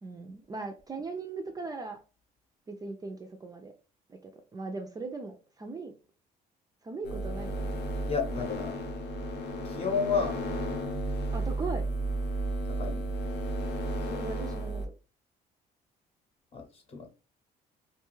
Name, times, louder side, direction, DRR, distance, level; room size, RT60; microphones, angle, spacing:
voice 1, 0.0-2.0 2.7-3.7 4.1-5.9 6.8-7.7 11.3-11.8 14.1-14.9, right 3 dB, 20° right, 0.4 m, -39 dB
sound 1, 7.0-14.9, right 1 dB, 80° left, 0.6 m, -33 dB
voice 2, 8.1-8.7 9.6-10.4 12.7-13.0 14.1-14.2 16.5-17.1, left 5 dB, 35° left, 0.8 m, -31 dB
2.6 x 2.3 x 2.9 m
cardioid pair, 110°, 17 cm